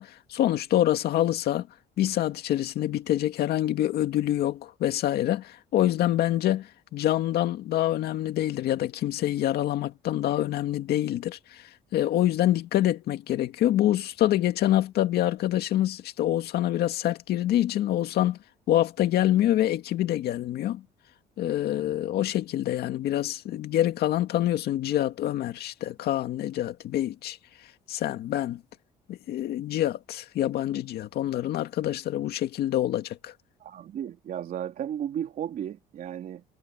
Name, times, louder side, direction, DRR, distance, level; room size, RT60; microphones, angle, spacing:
voice 1, 0.0-1.7 2.0-18.4 18.7-20.8 21.4-27.4 27.9-28.6 29.1-33.3, left 13 dB, 70° left, 2.1 m, -26 dB
voice 2, 33.6-36.4, right 10 dB, 55° right, 3.0 m, -34 dB
cardioid pair, 110°, 17 cm